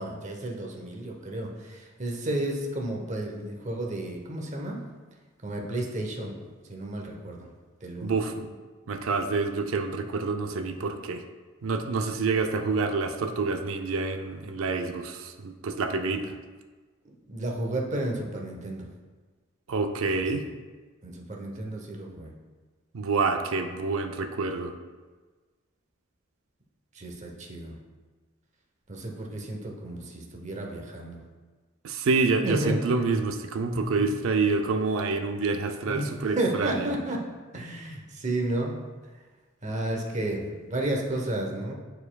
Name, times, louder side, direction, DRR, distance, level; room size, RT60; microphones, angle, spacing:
voice 1, 0.0-4.8 5.4-6.3 6.7-7.5 7.8-8.1 17.3-18.9 20.4-20.5 21.0-22.3 26.9-27.8 28.9-31.2 32.4-32.8 33.7-34.1 35.8-36.1 36.4-37.2 37.5-38.8 39.6-41.7, right 1 dB, 35° right, 1 dB, 0.9 m, -32 dB
voice 2, 8.0-8.5 8.9-11.2 11.6-16.4 19.7-20.4 22.9-24.7 31.8-36.9, right 4 dB, 85° right, 6 dB, 0.5 m, -27 dB
9.4 x 4.5 x 2.3 m, 1.4 s
head